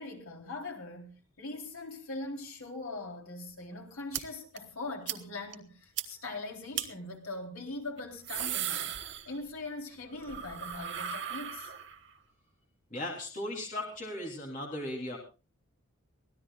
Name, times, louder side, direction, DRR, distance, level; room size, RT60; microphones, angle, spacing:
voice 1, 0.0-9.0 9.3-11.7, left 2 dB, 75° left, 3.9 m, -41 dB
sound 1, 4.1-4.2 4.6-4.7 5.1-5.2 5.5-5.6 6.0-6.1 6.7-6.9 8.0-9.7 10.0-12.1, right 10 dB, 55° right, 1.2 m, -36 dB
voice 2, 12.9-15.2, left 1 dB, 35° left, 3.4 m, -37 dB
24.0 x 17.0 x 2.4 m
head